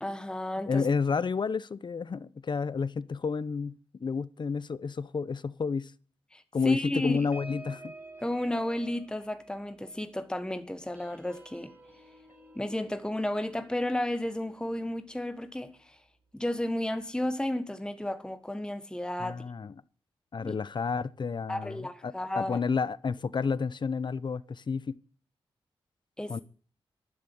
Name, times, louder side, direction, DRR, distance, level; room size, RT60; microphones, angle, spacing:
voice 1, 0.0-0.9 6.3-7.3 8.2-11.7 12.5-16.0 16.3-19.4 20.4-20.6 21.5-22.6 26.2-26.4, left 1 dB, 10° left, 1.3 m, -33 dB
voice 2, 0.7-5.9 6.5-7.9 19.2-19.7 20.3-25.0 26.3-26.4, left 5 dB, 50° left, 0.8 m, -31 dB
sound 1, 7.0-15.9 16.3-16.6 16.8-17.2, right 2 dB, 20° right, 4.7 m, -52 dB
12.0 x 11.0 x 8.5 m
cardioid pair, 70°, 10 cm